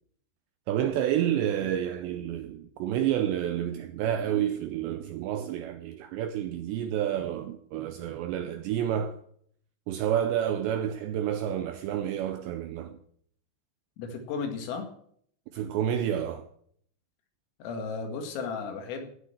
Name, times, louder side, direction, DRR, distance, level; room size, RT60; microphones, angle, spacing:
voice 1, 0.7-9.2 9.9-12.9 15.5-16.5, right 10 dB, 85° right, 2.5 m, -29 dB
voice 2, 14.0-14.9 17.6-19.1, left 5 dB, 80° left, 4.7 m, -34 dB
16.0 x 6.5 x 7.6 m
omnidirectional pair, 5.8 m